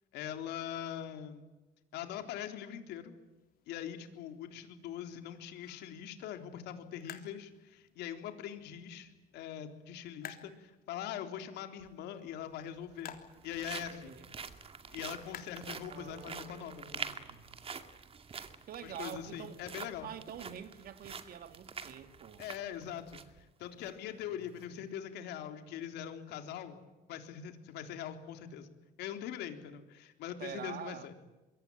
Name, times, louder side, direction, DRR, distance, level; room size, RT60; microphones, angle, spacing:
voice 1, 0.1-1.4 1.9-3.1 3.7-13.1 13.4-14.1 14.9-17.1 18.8-20.1 22.4-26.8 27.1-28.7 29.0-31.1, left 10 dB, 85° left, 3.7 m, -42 dB
sound 1, 3.2-16.4, left 9 dB, 60° left, 3.5 m, -56 dB
sound 2, 11.8-11.9 12.8-23.4 23.8-23.9 24.4-24.6, right 5 dB, 35° right, 2.3 m, -46 dB
voice 2, 13.9-14.3 15.9-17.5 18.7-19.6 20.0-22.4 24.3-24.5 30.4-31.1, right 9 dB, 60° right, 2.3 m, -47 dB
25.5 x 23.0 x 9.1 m
cardioid pair, 110°, 17 cm